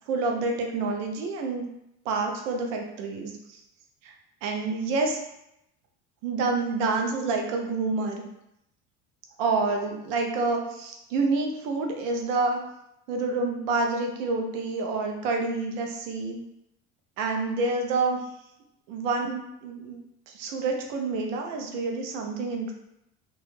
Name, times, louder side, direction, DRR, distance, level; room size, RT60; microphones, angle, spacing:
voice 1, 0.1-1.7 2.0-3.6 4.0-4.1 4.4-5.2 6.2-8.2 9.4-12.6 13.1-16.4 17.2-18.2 18.9-20.0 20.3-22.7, right 3 dB, 75° right, 2 dB, 0.6 m, -28 dB
2.2 x 2.1 x 3.1 m, 0.82 s
hypercardioid pair, 80°, 38 cm